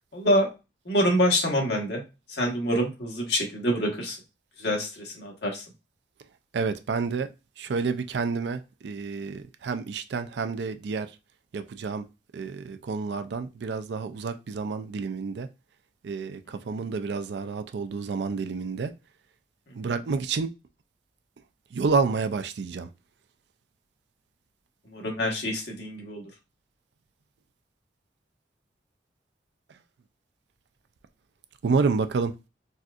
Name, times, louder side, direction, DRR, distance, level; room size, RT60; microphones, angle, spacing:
voice 1, 0.1-0.5 0.9-2.0 2.3-4.2 4.6-5.6 24.9-26.2, equal, 70° left, 1.2 m, -26 dB
voice 2, 6.5-7.3 7.6-11.1 11.5-12.1 12.3-15.5 16.0-18.9 19.7-20.5 21.7-22.9 31.6-32.3, right 4 dB, 75° right, 0.4 m, -29 dB
4.1 x 2.4 x 2.4 m
head